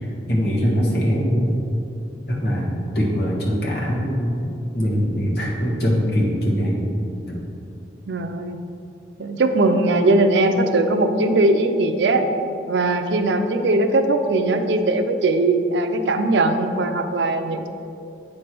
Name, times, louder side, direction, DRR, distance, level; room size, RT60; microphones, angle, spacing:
voice 1, 0.3-1.6 2.3-6.8 7.3-7.4, equal, 60° left, -4 dB, 1.5 m, -22 dB
voice 2, 8.1-8.6 9.2-12.2 12.7-17.7, right 2 dB, 85° right, 7 dB, 0.5 m, -20 dB
8.4 x 3.2 x 6.0 m, 2.7 s
head